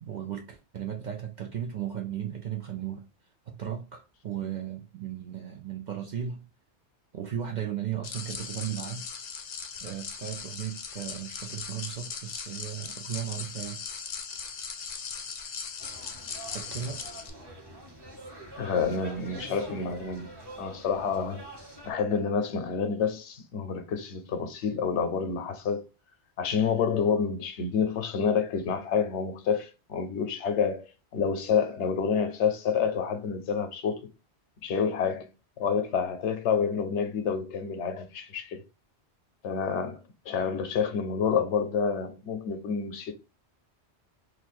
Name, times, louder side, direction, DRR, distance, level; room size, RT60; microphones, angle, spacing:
voice 1, 0.0-3.0 3.5-6.5 7.1-9.1 9.8-13.8 16.5-17.0, right 10 dB, 55° right, 0.5 m, -36 dB
sound 1, 8.0-17.3, left 6 dB, 50° left, 0.5 m, -39 dB
sound 2, 15.8-21.9, right 1 dB, 25° right, 0.7 m, -45 dB
voice 2, 18.6-20.3 20.6-21.4 21.8-25.8 26.4-30.9 31.1-34.0 34.6-35.3 35.6-38.6 39.4-40.0 40.3-43.1, left 6 dB, 80° left, 1.0 m, -28 dB
3.0 x 2.3 x 4.2 m
omnidirectional pair, 1.2 m